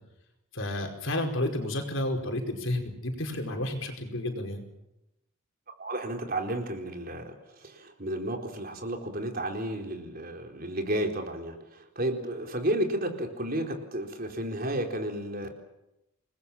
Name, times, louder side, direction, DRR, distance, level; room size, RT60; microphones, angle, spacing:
voice 1, 0.5-4.6, left 1 dB, 60° left, 4 dB, 5.0 m, -31 dB
voice 2, 5.8-15.5, right 1 dB, 45° right, 3 dB, 4.1 m, -32 dB
28.5 x 21.0 x 7.3 m, 0.89 s
head